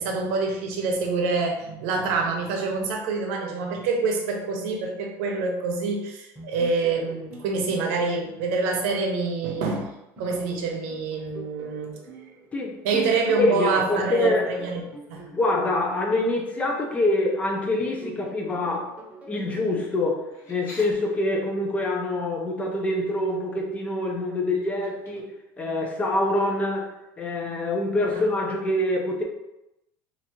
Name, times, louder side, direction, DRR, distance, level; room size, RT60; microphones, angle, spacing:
voice 1, 0.0-11.9 12.8-14.8 15.1-15.3 28.1-28.2, right 4 dB, 85° right, 2 dB, 0.7 m, -26 dB
sound 1, 6.4-9.7 10.2-13.4 14.0-17.3 17.8-21.0, right 2 dB, 15° right, 0.9 m, -45 dB
voice 2, 12.5-13.0 13.4-14.5 15.3-18.9 19.3-26.9 27.2-29.2, left 2 dB, 20° left, 1 dB, 0.6 m, -25 dB
sound 2, 20.3-20.9 22.6-22.8 23.1-23.6 24.6-25.6, left 1 dB, 35° left, 1.1 m, -46 dB
3.2 x 2.6 x 2.9 m, 0.90 s
cardioid pair, 140°, 8 cm